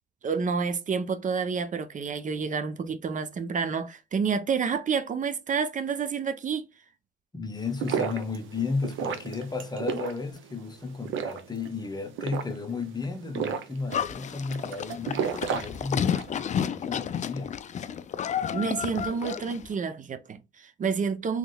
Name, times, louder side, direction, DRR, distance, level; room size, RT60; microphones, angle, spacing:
voice 1, 0.2-6.7 18.5-21.4, right 5 dB, 40° right, 0.6 m, -29 dB
voice 2, 7.3-17.5, left 4 dB, 20° left, 0.9 m, -34 dB
sound 1, 7.6-16.4, right 7 dB, 80° right, 0.8 m, -34 dB
Livestock farm animals working animals, 13.9-19.7, left 8 dB, 40° left, 0.4 m, -31 dB
3.7 x 3.1 x 2.2 m
cardioid pair, 90°, 20 cm